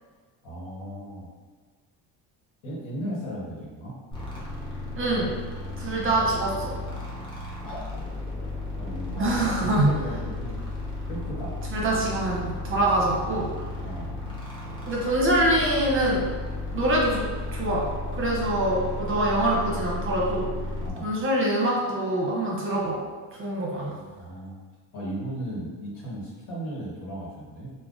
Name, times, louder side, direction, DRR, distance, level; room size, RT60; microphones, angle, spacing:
voice 1, 0.4-1.3 2.6-4.0 7.6-7.8 8.8-9.3 9.6-10.8 11.1-11.6 13.8-14.1 20.8-21.1 24.1-24.6 24.9-27.7, right 1 dB, 90° left, -5 dB, 1.2 m, -36 dB
sound 1, 4.1-20.9, left 2 dB, 10° left, 0.6 m, -34 dB
voice 2, 5.0-5.3 5.8-6.7 9.2-9.9 11.7-13.5 14.9-16.3 16.7-17.9 18.1-20.5 21.0-23.0 23.3-24.0, right 1 dB, 30° right, -3 dB, 0.7 m, -24 dB
3.6 x 2.2 x 2.4 m, 1.5 s
cardioid pair, 130°, 42 cm